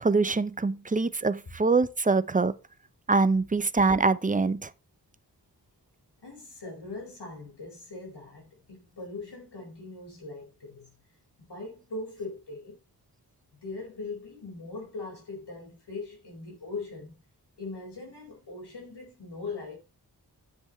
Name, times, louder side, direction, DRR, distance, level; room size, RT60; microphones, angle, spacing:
voice 1, 0.0-2.5 3.1-4.7, right 3 dB, 20° right, 0.6 m, -24 dB
voice 2, 6.2-10.9 11.4-12.8 13.5-17.2 17.6-19.8, left 3 dB, 90° left, 4.5 m, -40 dB
10.5 x 7.8 x 3.1 m
wide cardioid pair, 100°, 40 cm